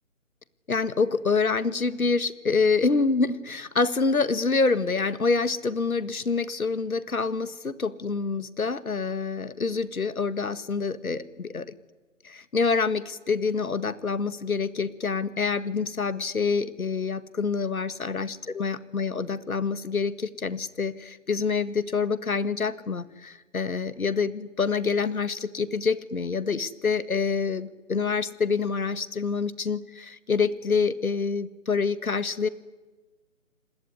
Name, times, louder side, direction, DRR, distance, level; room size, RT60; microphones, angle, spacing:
voice 1, 0.7-11.7 12.2-32.5, left 4 dB, 85° left, 14 dB, 1.8 m, -26 dB
30.0 x 20.0 x 9.6 m, 1.2 s
figure-of-eight pair, 165°, 42 cm